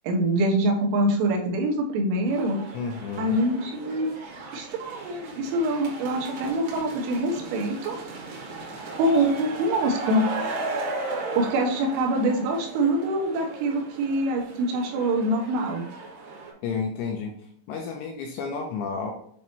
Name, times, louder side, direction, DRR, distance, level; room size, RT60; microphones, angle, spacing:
voice 1, 0.0-2.6 3.2-4.1 4.5-8.0 9.0-10.3 11.4-15.8, right 1 dB, 80° right, 1 dB, 3.4 m, -24 dB
sound 1, 2.3-16.5, right 2 dB, 65° right, 3.2 m, -36 dB
voice 2, 2.7-3.3 16.6-17.3 17.7-19.1, left 5 dB, 80° left, 1 dB, 2.6 m, -31 dB
8.2 x 3.0 x 4.4 m, 0.64 s
omnidirectional pair, 5.7 m